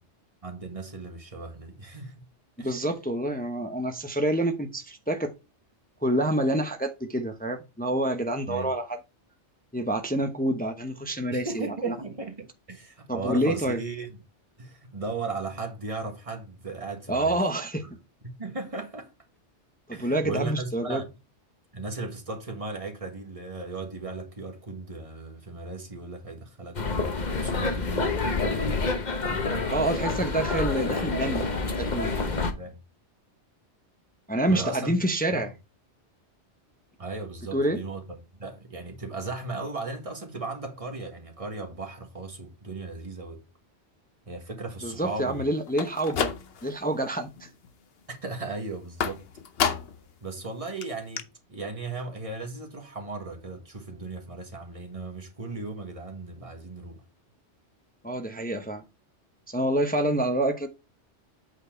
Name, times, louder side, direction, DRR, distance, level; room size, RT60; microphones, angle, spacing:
voice 1, 0.4-2.2 2.6-2.8 8.5-8.7 11.3-14.2 14.6-17.4 17.8-17.9 18.2-19.1 19.9-21.1 21.7-28.1 29.2-29.9 32.2-32.8 34.5-35.0 35.3-35.5 37.0-38.0 38.4-43.4 44.3-45.4 48.1-49.2 50.2-57.0, right 3 dB, 30° right, 1.6 m, -36 dB
voice 2, 2.6-5.3 6.0-9.0 9.7-11.9 13.1-13.8 17.1-17.8 19.9-21.0 29.7-32.3 34.3-35.5 37.5-37.8 44.8-46.3 46.6-47.5 58.0-58.8 59.5-60.7, right 1 dB, 10° left, 0.7 m, -27 dB
sound 1, 26.7-32.5, left 3 dB, 40° left, 1.1 m, -28 dB
sound 2, 45.7-46.8 47.2-47.7 49.0-50.1 50.5-50.6 50.8-50.9 51.2-51.3, left 7 dB, 60° left, 0.9 m, -30 dB
8.4 x 4.5 x 4.4 m
omnidirectional pair, 1.2 m